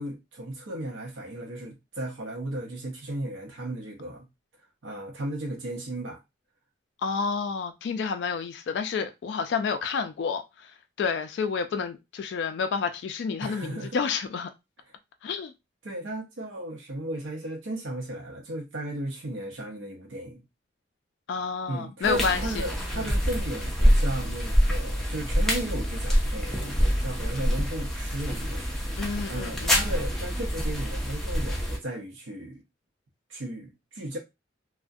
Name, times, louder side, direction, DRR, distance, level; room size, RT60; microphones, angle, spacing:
voice 1, 0.0-4.3 4.8-6.2 13.4-14.0 15.8-20.4 21.7-32.6 33.3-34.2, right 1 dB, 90° right, 0.7 m, -35 dB
voice 2, 7.0-10.7 11.0-14.5 15.2-15.5 21.3-22.6 22.9-23.1 29.0-29.9, left 5 dB, 70° left, 0.3 m, -30 dB
sound 1, 22.0-31.8, equal, ahead, 0.4 m, -26 dB
2.3 x 2.1 x 2.5 m
head